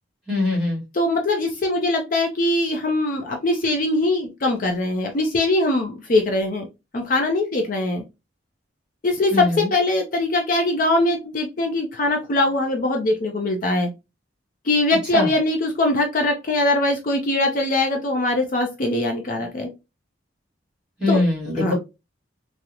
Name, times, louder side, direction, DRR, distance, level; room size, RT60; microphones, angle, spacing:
voice 1, 0.3-0.8 9.3-9.7 15.1-15.3 21.0-21.7, left 2 dB, 5° right, -4 dB, 1.7 m, -22 dB
voice 2, 0.9-6.7 6.9-8.0 9.0-13.9 14.7-19.7 21.1-21.2 21.6-21.7, left 2 dB, 45° left, 2 dB, 0.5 m, -22 dB
3.6 x 2.0 x 2.8 m, 0.25 s
head